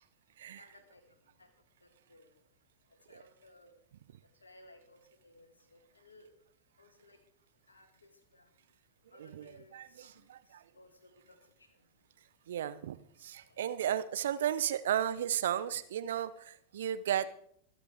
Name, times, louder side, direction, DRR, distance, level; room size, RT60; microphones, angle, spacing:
voice 1, 0.6-1.0 1.4-1.5 1.8-2.3 3.1-3.7 4.4-6.3 6.8-7.2 7.7-8.5 9.1-10.2 10.7-11.4 13.5-13.7, left 2 dB, 75° left, 6 dB, 2.2 m, -60 dB
voice 2, 9.2-10.6 12.5-17.3, right 10 dB, 60° right, 14 dB, 0.7 m, -34 dB
24.5 x 8.3 x 3.6 m, 0.68 s
figure-of-eight pair, 90°, 0 cm